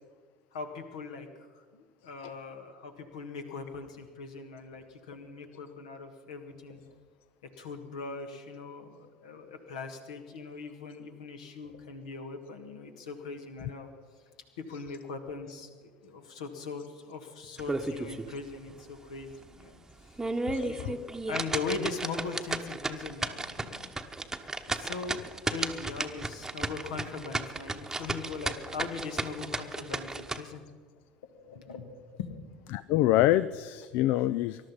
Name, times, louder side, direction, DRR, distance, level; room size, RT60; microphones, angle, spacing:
voice 1, 0.5-1.3 1.5-6.8 7.4-13.9 14.6-20.1 20.4-23.9 24.8-30.6 31.5-32.5, left 4 dB, 70° left, 6 dB, 1.7 m, -40 dB
sound 1, 17.6-18.3 18.7-18.8 19.3-19.4 20.0-30.4, right 2 dB, 10° right, 1.1 m, -34 dB
voice 2, 32.7-34.7, left 14 dB, 55° left, 16 dB, 0.4 m, -25 dB
20.5 x 12.5 x 5.5 m, 1.5 s
figure-of-eight pair, 65°, 4 cm